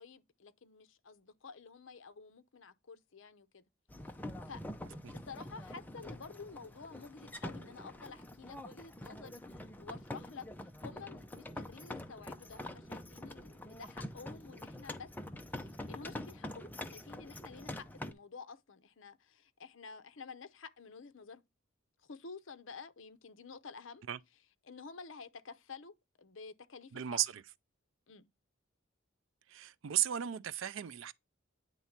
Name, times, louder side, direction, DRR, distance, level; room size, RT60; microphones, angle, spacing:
voice 1, 0.0-3.6 4.5-4.6 5.1-15.1 15.5-21.4 22.0-24.0 24.6-27.2 28.1-28.3, left 4 dB, 70° left, 0.7 m, -51 dB
sound 1, 3.9-18.1, left 1 dB, 10° left, 0.6 m, -45 dB
voice 2, 26.9-27.4 29.5-31.1, right 11 dB, 70° right, 0.4 m, -35 dB
9.3 x 3.1 x 5.8 m
head